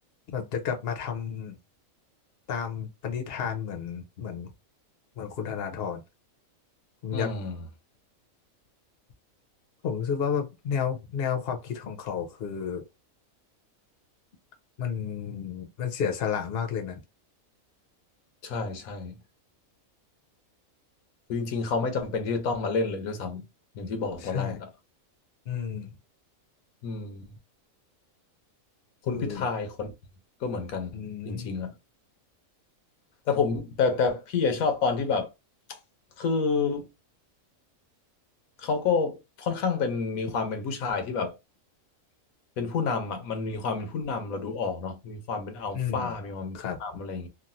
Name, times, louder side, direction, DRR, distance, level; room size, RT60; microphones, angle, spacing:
voice 1, 0.3-1.6 2.5-4.5 5.2-6.0 7.0-7.3 9.8-12.8 14.8-17.0 24.2-24.6 25.5-26.0 29.1-29.5 30.9-31.5 45.7-46.1 46.5-46.8, left 7 dB, 55° left, 0.9 m, -31 dB
voice 2, 7.1-7.6 18.4-19.1 21.3-23.5 23.7-24.7 26.8-27.3 29.0-29.9 30.4-31.7 33.3-35.3 36.2-36.9 38.6-41.3 42.6-47.3, left 4 dB, 90° left, 1.3 m, -29 dB
3.1 x 2.5 x 2.5 m
omnidirectional pair, 1.4 m